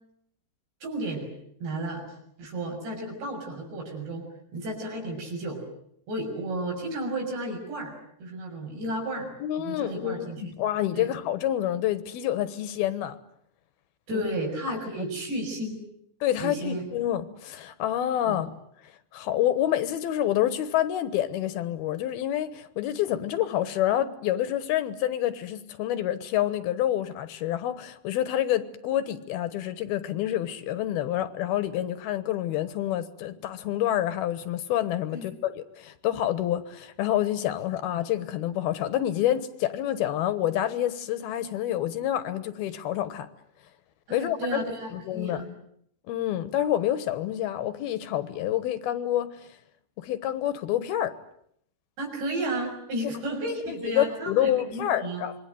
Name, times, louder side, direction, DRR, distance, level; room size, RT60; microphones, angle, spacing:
voice 1, 0.8-1.3 1.6-2.1 2.4-4.3 4.5-5.6 6.1-7.9 8.2-9.3 9.6-10.5 11.0-11.1 14.1-15.9 16.4-16.8 18.3-18.4 35.1-35.3 44.1-45.5 52.0-55.3, right 1 dB, 85° right, 3 dB, 8.9 m, -33 dB
voice 2, 9.4-13.2 14.1-14.2 15.0-15.1 16.2-18.5 19.1-43.3 44.1-44.6 44.9-45.4 46.1-49.4 50.0-51.1 53.7-55.4, left 12 dB, 70° left, 12 dB, 3.0 m, -28 dB
27.0 x 22.0 x 9.3 m, 0.71 s
omnidirectional pair, 4.8 m